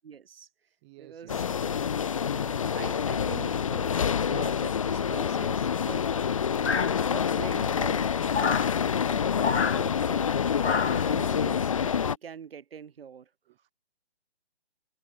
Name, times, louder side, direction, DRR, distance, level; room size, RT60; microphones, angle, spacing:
voice 1, 0.0-0.5 1.0-1.4 2.2-6.1 6.8-8.1 9.0-10.3 10.8-13.3, right 7 dB, 60° right, 1.7 m, -44 dB
voice 2, 0.8-1.9 13.5-13.7, right 23 dB, 25° right, 2.6 m, -54 dB
sound 1, 1.3-12.2, left 7 dB, 30° left, 0.4 m, -27 dB
sound 2, 6.6-7.4 8.3-8.7 9.4-9.8 10.6-11.1, left 5 dB, 85° left, 1.5 m, -29 dB
open air
figure-of-eight pair, 145°, 33 cm